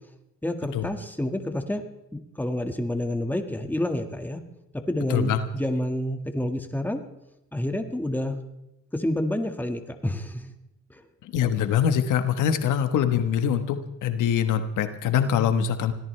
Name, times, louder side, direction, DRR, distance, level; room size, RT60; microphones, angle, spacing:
voice 1, 0.4-1.8 2.1-4.4 4.7-7.0 7.5-8.4 8.9-10.5 10.9-11.0, left 1 dB, 5° left, 5 dB, 1.7 m, -28 dB
voice 2, 11.2-15.9, left 8 dB, 85° left, 9 dB, 1.3 m, -24 dB
25.0 x 17.5 x 3.3 m, 0.93 s
cardioid pair, 90°, 30 cm